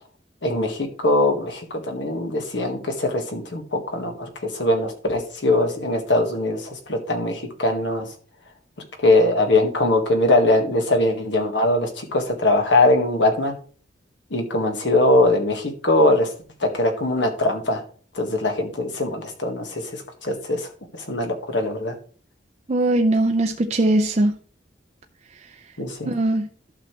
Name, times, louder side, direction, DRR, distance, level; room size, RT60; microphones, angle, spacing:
voice 1, 0.4-8.1 9.0-13.6 14.3-16.3 16.6-17.8 18.1-20.7 20.9-21.9 25.8-26.1, left 2 dB, 65° left, 1.7 m, -21 dB
voice 2, 22.7-24.3 26.1-26.5, right 1 dB, 35° right, 0.5 m, -20 dB
11.5 x 6.4 x 3.2 m
head